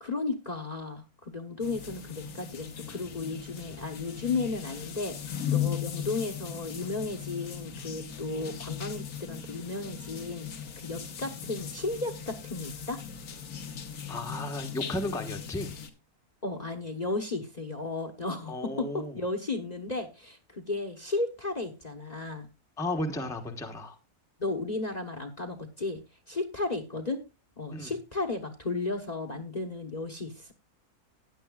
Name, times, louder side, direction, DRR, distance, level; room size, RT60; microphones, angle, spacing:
voice 1, 0.0-13.0 16.4-22.5 24.4-26.0 26.3-27.2 27.6-30.5, left 3 dB, 30° left, 5 dB, 1.1 m, -34 dB
sound 1, 1.6-15.9, left 9 dB, 80° left, 1.7 m, -38 dB
voice 2, 14.1-15.8 18.5-19.1 22.8-24.0 27.7-27.9, left 1 dB, ahead, 4 dB, 1.0 m, -34 dB
16.0 x 10.0 x 2.3 m, 0.24 s
omnidirectional pair, 1.5 m